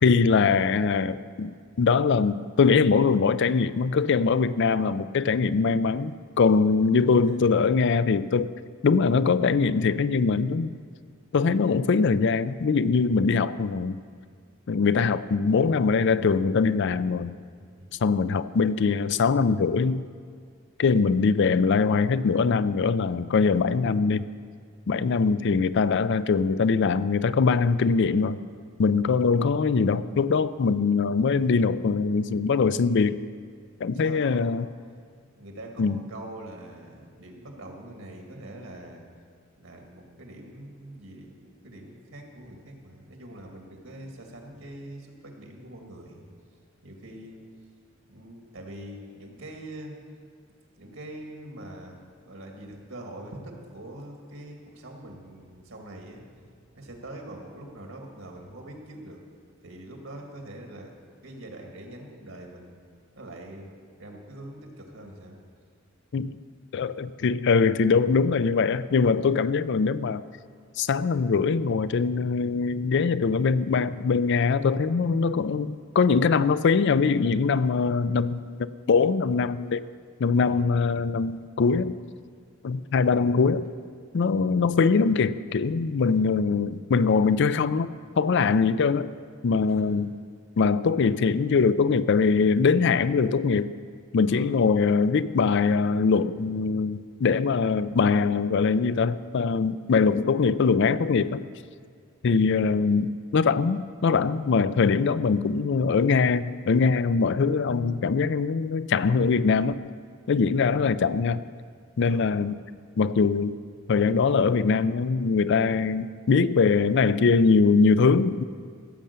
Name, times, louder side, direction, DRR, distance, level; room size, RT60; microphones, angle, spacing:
voice 1, 0.0-8.5 8.8-10.7 11.3-14.0 14.7-17.3 18.0-20.0 20.8-24.3 24.9-28.4 28.8-33.3 33.8-34.7 35.8-36.0 66.1-66.4 66.7-70.2 70.8-79.8 80.2-82.0 82.6-83.7 84.1-89.1 89.4-90.1 90.6-93.7 94.1-101.4 102.2-110.0 110.3-111.4 112.0-112.6 113.0-113.6 113.9-118.4, left 5 dB, 60° left, 15 dB, 0.4 m, -22 dB
voice 2, 17.8-18.1 34.0-34.6 35.3-39.0 39.6-46.3 46.8-47.4 48.1-49.9 50.8-56.4 56.7-59.2 59.6-60.9 61.2-62.7 63.1-63.7 64.0-65.4 80.4-80.7 89.7-89.9 94.2-94.5 112.0-112.3, right 1 dB, 80° right, 2 dB, 2.1 m, -43 dB
16.0 x 7.5 x 6.8 m, 2.1 s
head